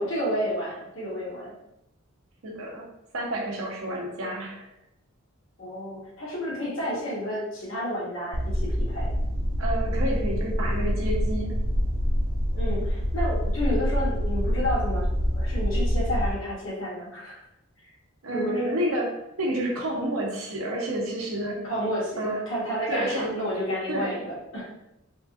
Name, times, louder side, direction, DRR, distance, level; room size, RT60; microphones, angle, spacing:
voice 1, 0.0-1.5 5.6-9.1 12.5-17.4 17.8-17.9 18.3-18.8 21.6-24.7, equal, 65° left, -5 dB, 1.2 m, -31 dB
voice 2, 2.4-2.9 3.1-4.7 9.6-11.5 18.2-21.6 22.2-22.5 22.9-23.4 23.9-24.2, right 1 dB, 80° right, -1 dB, 0.7 m, -29 dB
sound 1, 8.3-16.3, equal, 45° right, 0.4 m, -26 dB
3.5 x 2.5 x 2.4 m, 0.85 s
head